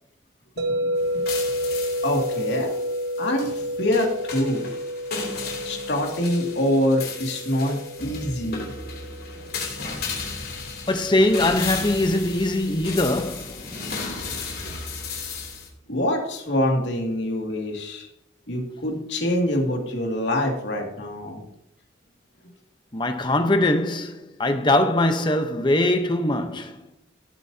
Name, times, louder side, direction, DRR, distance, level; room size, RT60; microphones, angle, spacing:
sound 1, 0.6-10.7, equal, 65° right, 1.4 m, -30 dB
voice 1, 0.7-1.2 1.7-2.8 3.2-4.7 5.6-8.7 14.3-14.4 14.6-14.7 15.9-18.1 18.5-21.4, left 1 dB, 70° left, 2.4 m, -25 dB
sound 2, 1.0-15.7, left 4 dB, 55° left, 3.0 m, -35 dB
voice 2, 10.9-13.6 22.9-26.8, left 1 dB, 25° left, 0.9 m, -22 dB
17.0 x 7.9 x 2.8 m
head